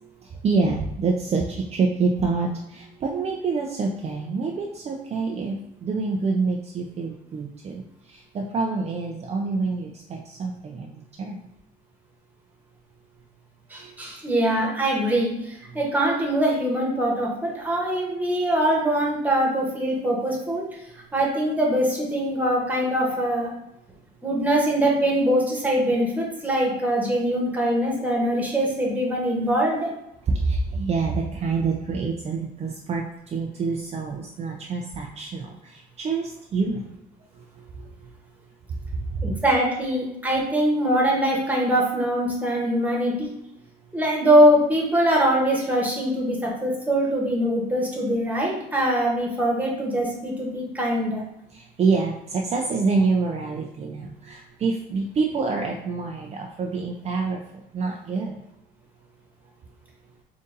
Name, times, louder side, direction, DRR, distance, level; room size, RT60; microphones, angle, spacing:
voice 1, 0.0-11.4 13.8-13.9 30.3-36.9 37.4-38.1 38.9-39.4 51.5-57.4 57.7-58.4, right 4 dB, 40° right, 0 dB, 0.5 m, -27 dB
voice 2, 13.7-20.6 21.1-23.5 24.2-29.9 39.2-43.3 43.9-51.2, right 1 dB, 10° right, -3 dB, 1.3 m, -23 dB
3.8 x 2.6 x 3.8 m, 0.83 s
cardioid pair, 110°, 17 cm